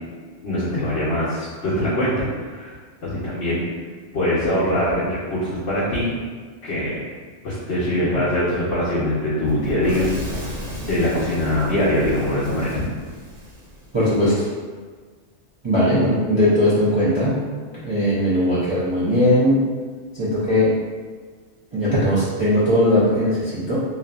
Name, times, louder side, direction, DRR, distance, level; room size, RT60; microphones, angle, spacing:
voice 1, 0.4-2.1 2.4-2.7 3.0-3.6 4.1-6.1 6.6-7.0 7.4-10.1 10.9-12.8, left 1 dB, 65° left, -10 dB, 0.9 m, -22 dB
Fire / Explosion, 9.4-14.3, equal, 70° right, 1.0 m, -34 dB
voice 2, 13.9-14.5 15.6-17.3 17.8-19.6 20.1-20.7 21.7-23.8, equal, 30° right, -12 dB, 0.5 m, -19 dB
2.6 x 2.4 x 2.2 m, 1.5 s
omnidirectional pair, 1.2 m